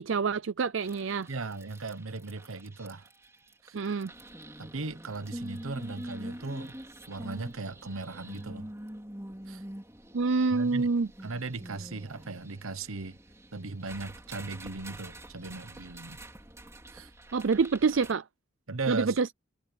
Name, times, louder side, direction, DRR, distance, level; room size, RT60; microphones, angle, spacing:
voice 1, 0.0-1.3 3.7-4.1 10.1-11.1 17.3-18.2 18.9-19.3, right 4 dB, 70° right, 0.5 m, -26 dB
sound 1, 0.8-18.1, right 1 dB, 15° right, 2.9 m, -46 dB
voice 2, 1.3-3.1 3.6-3.8 4.6-6.7 7.1-8.7 9.5-9.6 10.5-10.9 11.2-13.2 13.5-16.2 16.9-17.1 18.7-19.2, right 3 dB, 90° right, 1.2 m, -37 dB
head